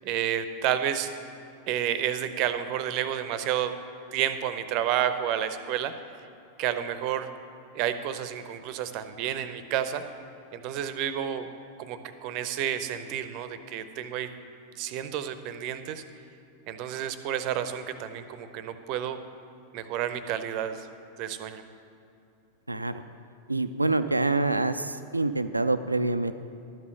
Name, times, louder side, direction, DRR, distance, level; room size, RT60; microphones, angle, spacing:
voice 1, 0.0-1.1 1.7-3.7 4.1-5.9 6.6-7.3 7.7-10.0 10.5-11.5 11.8-14.3 14.8-16.0 16.7-19.2 19.7-20.9 21.2-21.6, right 10 dB, 40° right, 11 dB, 0.7 m, -30 dB
voice 2, 22.7-23.1 23.5-26.3, right 2 dB, 85° right, 11 dB, 0.4 m, -26 dB
12.0 x 5.6 x 7.3 m, 2.6 s
figure-of-eight pair, 90°, 0 cm